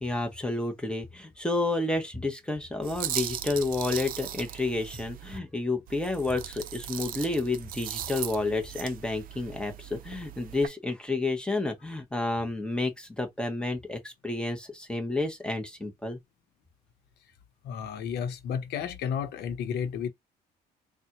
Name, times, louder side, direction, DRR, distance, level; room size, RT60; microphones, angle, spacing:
voice 1, 0.0-16.2, left 2 dB, 5° left, 1.0 m, -30 dB
sound 1, 2.8-5.4 5.9-10.7, right 11 dB, 60° right, 0.5 m, -38 dB
voice 2, 17.6-20.1, left 7 dB, 75° left, 0.9 m, -32 dB
4.0 x 2.3 x 2.9 m
cardioid pair, 110°, 17 cm